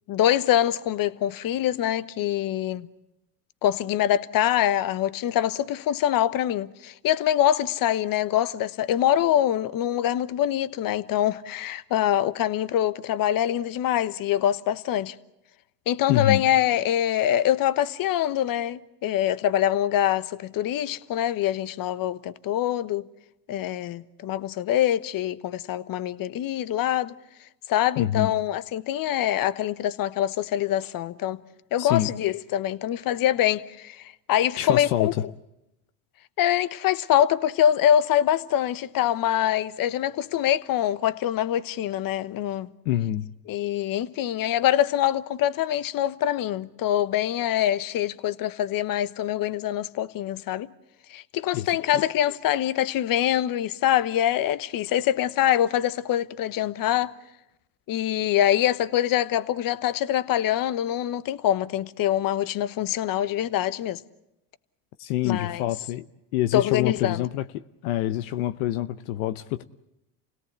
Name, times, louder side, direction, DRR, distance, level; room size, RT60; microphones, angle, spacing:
voice 1, 0.1-2.9 3.6-15.1 15.9-23.1 23.5-27.1 27.7-31.4 31.7-35.1 36.4-42.7 43.5-50.7 51.1-57.1 57.9-64.0 65.2-65.6 66.5-67.3, left 11 dB, 50° left, 1.2 m, -24 dB
voice 2, 16.1-16.4 28.0-28.3 31.8-32.1 34.6-35.1 42.8-43.3 51.5-51.7 51.9-52.0 65.0-66.1 66.3-67.4 67.8-69.6, left 13 dB, 80° left, 0.9 m, -26 dB
29.0 x 17.5 x 8.2 m
supercardioid pair, 85°, 43 cm